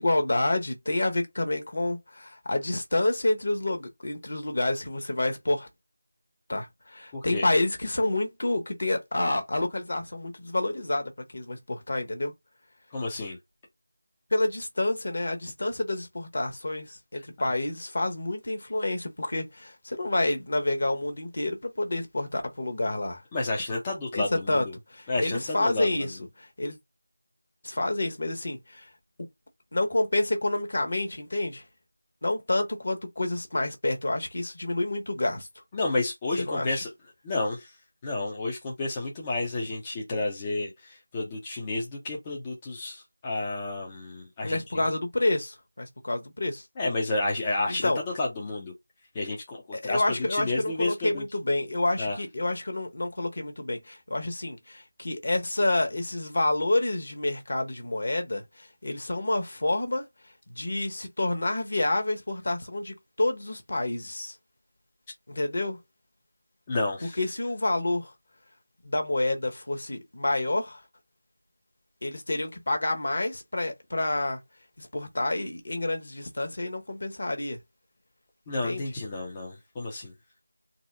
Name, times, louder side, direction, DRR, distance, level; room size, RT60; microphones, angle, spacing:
voice 1, 0.0-5.7 6.5-12.3 14.3-23.2 24.1-24.7 24.9-26.8 27.6-28.8 29.7-31.6 32.2-35.5 36.5-36.8 44.4-46.6 47.7-48.0 49.7-60.0 60.5-64.3 65.3-65.8 67.2-68.1 68.8-70.8 72.0-74.4 74.8-77.6 78.6-78.8, left 2 dB, 45° left, 1.2 m, -28 dB
voice 2, 7.1-7.5 12.9-13.4 23.3-24.7 25.1-26.2 35.7-36.9 37.2-37.8 38.0-44.9 46.8-48.7 49.1-50.0 50.3-51.2 52.0-52.2 66.7-67.2 78.5-80.1, left 2 dB, 15° left, 0.7 m, -31 dB
4.1 x 2.0 x 3.7 m
figure-of-eight pair, 170°, 0 cm